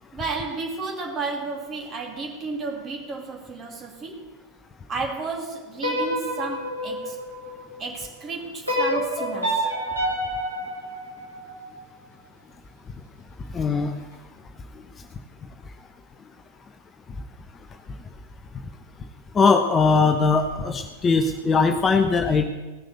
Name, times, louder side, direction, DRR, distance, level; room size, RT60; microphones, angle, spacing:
voice 1, 0.1-4.3 4.9-7.2 7.8-9.7, right 3 dB, 25° right, 2 dB, 2.7 m, -32 dB
sound 1, 5.7-7.9 8.7-11.8, equal, 85° right, 5.7 m, -28 dB
voice 2, 13.5-13.9 19.3-22.4, left 4 dB, 20° left, 6 dB, 0.9 m, -20 dB
17.0 x 6.4 x 8.2 m, 1.2 s
figure-of-eight pair, 90°, 0 cm